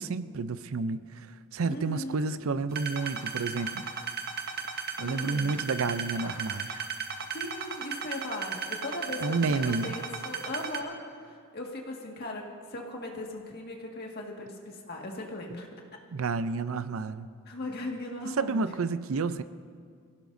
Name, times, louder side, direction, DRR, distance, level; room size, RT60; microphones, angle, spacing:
voice 1, 0.0-3.9 5.0-6.9 9.2-10.0 16.1-17.3 18.4-19.4, right 4 dB, 75° right, 13 dB, 0.5 m, -30 dB
voice 2, 1.6-2.4 5.0-5.6 7.3-12.4 12.7-15.7 17.4-18.7, left 1 dB, 50° left, 0 dB, 1.9 m, -38 dB
sound 1, 2.8-10.8, right 6 dB, 50° right, 1.1 m, -35 dB
25.0 x 16.0 x 2.7 m, 2.1 s
head